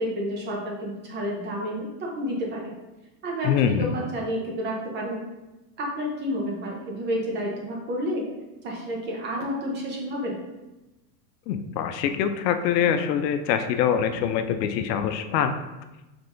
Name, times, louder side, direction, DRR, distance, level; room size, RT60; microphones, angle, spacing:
voice 1, 0.0-2.7 3.2-5.2 5.8-8.2 8.6-10.4, equal, 20° right, -1 dB, 0.7 m, -30 dB
voice 2, 3.4-3.9 11.5-15.5, left 8 dB, 80° left, 8 dB, 0.6 m, -24 dB
5.3 x 3.3 x 2.6 m, 1.0 s
supercardioid pair, 145°, 49 cm